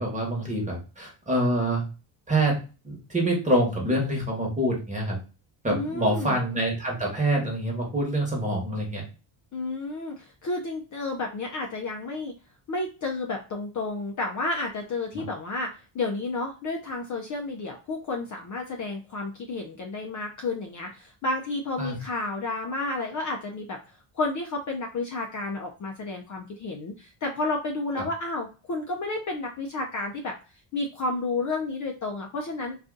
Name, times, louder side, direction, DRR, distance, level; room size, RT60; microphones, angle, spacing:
voice 1, 0.0-1.8 2.3-2.6 2.8-5.2 5.6-9.0 15.1-15.2 21.8-22.0 27.9-28.0, right 1 dB, 15° right, -1 dB, 1.1 m, -26 dB
voice 2, 5.7-6.4 9.5-12.3 12.7-23.8 24.1-30.3 30.7-32.8, left 2 dB, 40° left, 1 dB, 0.4 m, -31 dB
2.5 x 2.4 x 3.7 m, 0.33 s
cardioid pair, 125°, 48 cm